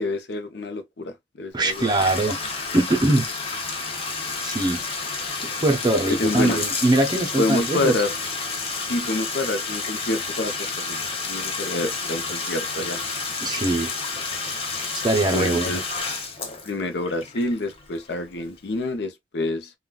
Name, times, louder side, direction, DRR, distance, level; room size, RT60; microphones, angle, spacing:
voice 1, 0.0-1.9 6.2-6.6 7.4-8.1 8.8-11.0 11.3-13.0 15.3-15.9 16.6-19.7, left 2 dB, 70° left, 0.6 m, -27 dB
voice 2, 1.5-2.4 2.7-3.2 4.4-4.8 5.6-7.9 13.4-13.9 14.9-15.8, right 2 dB, 25° right, 0.5 m, -22 dB
Bathtub (filling or washing), 1.6-18.3, left 4 dB, 30° left, 0.6 m, -30 dB
3.7 x 2.2 x 2.3 m
head